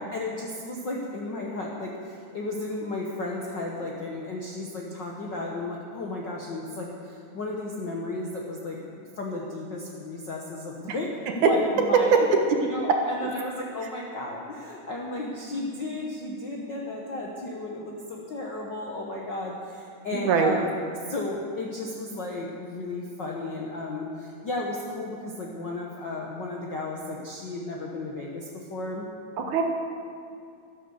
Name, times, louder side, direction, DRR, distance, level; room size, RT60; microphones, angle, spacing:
voice 1, 0.1-12.3 12.6-20.8 21.1-29.1, left 2 dB, 60° left, -2 dB, 1.2 m, -34 dB
voice 2, 12.1-12.6 20.1-20.5 29.4-29.6, right 5 dB, 70° right, 3 dB, 2.6 m, -21 dB
13.0 x 12.0 x 7.0 m, 2.4 s
omnidirectional pair, 3.8 m